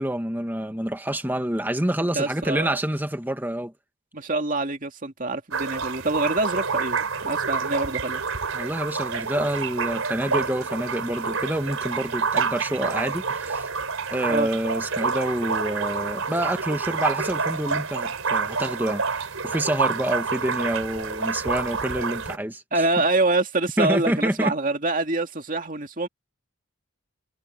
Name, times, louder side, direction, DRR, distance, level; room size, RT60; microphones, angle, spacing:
voice 1, 0.0-3.7 8.5-13.7 14.1-22.6 23.8-24.5, right 1 dB, 10° right, 1.4 m, -27 dB
voice 2, 2.1-2.8 4.1-8.2 14.3-14.5 22.7-26.1, right 2 dB, 40° right, 2.3 m, -25 dB
sound 1, 5.5-22.4, right 5 dB, 75° right, 4.3 m, -28 dB
head